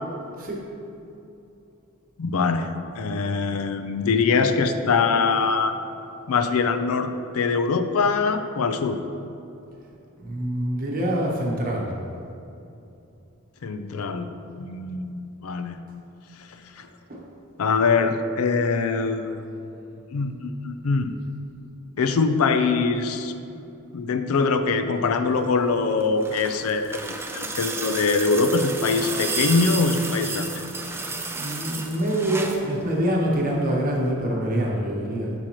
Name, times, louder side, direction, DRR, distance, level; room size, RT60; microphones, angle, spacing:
voice 1, 2.2-5.7 6.3-9.0 13.6-14.3 14.6-15.8 17.6-19.4 20.1-21.1 22.0-23.3 23.9-30.6, left 4 dB, 75° left, 9 dB, 0.4 m, -23 dB
voice 2, 10.2-11.9 17.1-17.2 31.3-35.3, right 1 dB, 40° right, -2 dB, 1.2 m, -25 dB
sound 1, 25.9-32.7 34.0-34.1, right 3 dB, 10° right, 0.4 m, -31 dB
8.7 x 6.1 x 3.0 m, 2.7 s
head